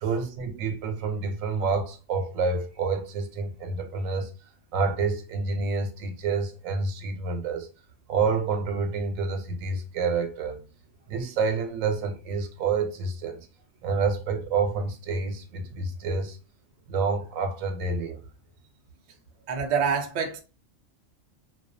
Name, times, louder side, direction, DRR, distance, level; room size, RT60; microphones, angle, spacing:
voice 1, 0.0-4.3 4.7-7.7 8.1-10.6 11.1-13.5 13.8-16.4 16.9-18.2, right 4 dB, 85° right, 1.0 m, -28 dB
voice 2, 19.5-20.4, right 6 dB, 70° right, 0.4 m, -26 dB
2.3 x 2.3 x 2.5 m
omnidirectional pair, 1.3 m